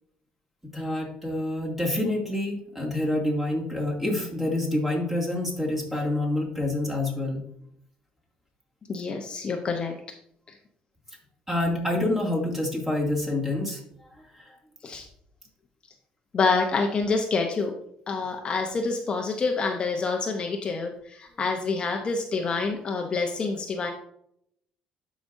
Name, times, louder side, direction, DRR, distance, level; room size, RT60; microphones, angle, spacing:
voice 1, 0.7-7.4 11.5-13.8 14.2-14.6, left 1 dB, 10° right, -2 dB, 2.5 m, -27 dB
voice 2, 8.9-10.0 14.8-15.1 16.3-17.8 18.1-23.9, left 4 dB, 35° left, 3 dB, 0.9 m, -27 dB
12.5 x 5.1 x 2.7 m, 0.73 s
cardioid pair, 115°, 3 cm